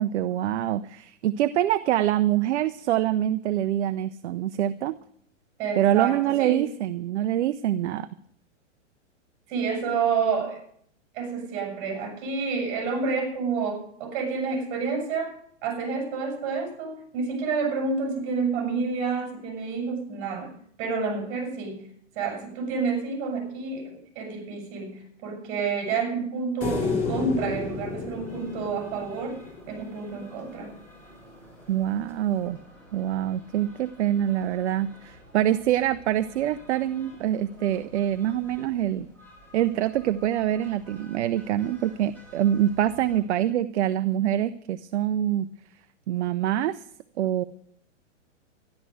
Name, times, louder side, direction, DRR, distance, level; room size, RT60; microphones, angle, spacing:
voice 1, 0.0-4.9 5.8-8.1 31.7-32.6 32.9-39.1 39.5-45.5 46.1-46.9 47.2-47.4, right 12 dB, 60° right, 12 dB, 0.8 m, -25 dB
voice 2, 5.6-6.6 9.5-10.6 11.1-15.3 15.6-20.5 20.8-21.9 22.1-29.4 29.7-30.7, right 4 dB, 40° right, 3 dB, 6.7 m, -29 dB
sound 1, 26.6-29.9 32.5-32.6, left 3 dB, 20° left, 3.4 m, -31 dB
sound 2, 27.5-43.2, equal, 5° left, 7.3 m, -51 dB
13.5 x 11.5 x 7.8 m, 0.65 s
hypercardioid pair, 140°, 38 cm